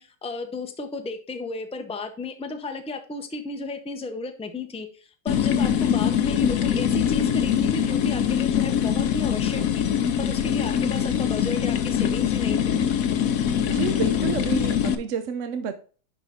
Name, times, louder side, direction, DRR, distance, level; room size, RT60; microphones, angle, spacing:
voice 1, 0.0-9.9 10.2-12.7, left 3 dB, 5° left, 6 dB, 0.5 m, -34 dB
sound 1, 5.3-15.0, left 8 dB, 65° left, 1.1 m, -23 dB
voice 2, 13.7-15.7, right 7 dB, 60° right, 8 dB, 0.9 m, -30 dB
10.5 x 3.7 x 4.2 m, 0.39 s
omnidirectional pair, 1.7 m